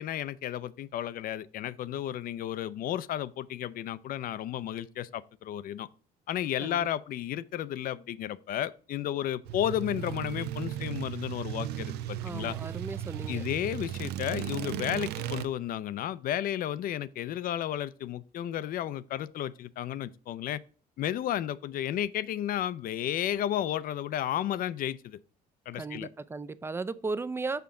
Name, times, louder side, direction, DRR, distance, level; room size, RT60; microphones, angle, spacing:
voice 1, 0.0-5.9 6.3-12.6 13.3-20.6 21.0-25.2 25.7-26.1, left 11 dB, 55° left, 0.4 m, -33 dB
sound 1, 9.5-15.5, right 12 dB, 75° right, 0.5 m, -36 dB
voice 2, 12.2-13.4 25.8-27.6, right 3 dB, 15° right, 0.4 m, -36 dB
5.8 x 5.7 x 3.6 m
cardioid pair, 110°, 17 cm